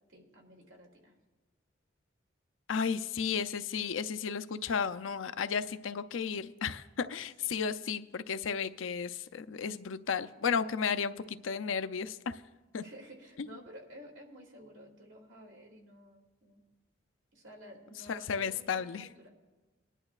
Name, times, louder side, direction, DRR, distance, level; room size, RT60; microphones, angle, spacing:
voice 1, 0.1-1.1 7.4-7.5 12.8-16.6 17.3-19.3, equal, 75° right, 0 dB, 2.5 m, -52 dB
voice 2, 2.7-12.4 12.7-12.8 13.4-13.5 18.1-19.1, left 6 dB, 80° left, 10 dB, 0.5 m, -33 dB
20.5 x 11.0 x 2.4 m, 1.2 s
head